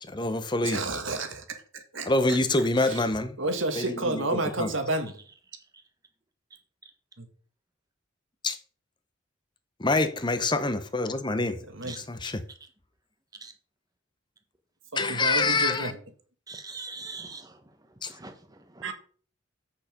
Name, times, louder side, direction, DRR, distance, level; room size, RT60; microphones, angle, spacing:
voice 1, 0.0-0.8 2.0-3.4 3.8-4.7 8.4-8.6 9.8-12.4 14.9-15.9 18.0-18.1, left 2 dB, 20° left, 0.8 m, -26 dB
voice 2, 0.6-2.4 2.8-3.0 3.4-5.2 7.2-7.3 11.7-11.9 14.9-16.0 18.8-18.9, right 2 dB, 70° right, 1.7 m, -31 dB
voice 3, 11.9-12.3 13.4-13.5 16.5-17.8 18.0-18.9, right 3 dB, 20° right, 1.2 m, -43 dB
8.2 x 6.7 x 5.1 m
head